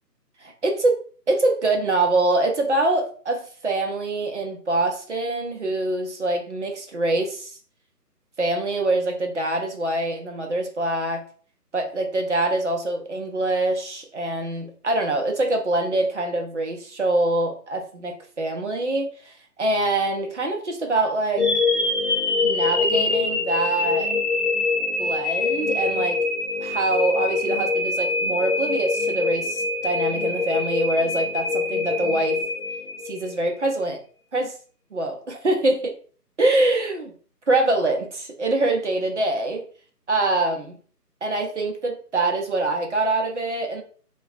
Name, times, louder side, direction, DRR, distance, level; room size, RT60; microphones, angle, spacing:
voice 1, 0.4-1.0 1.3-7.5 8.4-11.2 11.7-21.5 22.4-24.2 25.0-26.2 26.6-32.4 33.1-34.0 34.3-34.5 34.9-35.9 36.4-37.1 37.5-39.7 40.1-40.8 41.2-43.8, right 2 dB, 50° right, 3 dB, 0.5 m, -24 dB
sound 1, 21.4-33.5, left 3 dB, 45° left, 0.5 m, -24 dB
2.5 x 2.3 x 2.2 m, 0.43 s
figure-of-eight pair, 155°, 48 cm